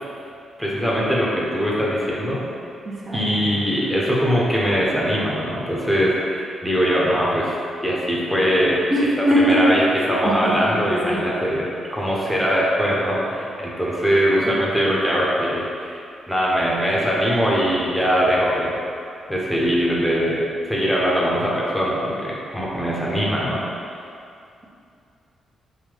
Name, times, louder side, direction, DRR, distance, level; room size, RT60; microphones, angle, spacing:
voice 1, 0.6-2.4 3.1-7.6 7.8-8.8 9.4-9.8 10.1-18.8 19.3-20.4 20.7-23.6, equal, ahead, -6 dB, 0.9 m, -21 dB
voice 2, 2.8-3.3 8.9-11.2, equal, 45° right, -7 dB, 1.0 m, -22 dB
3.8 x 2.7 x 3.4 m, 2.5 s
hypercardioid pair, 40°, 0 cm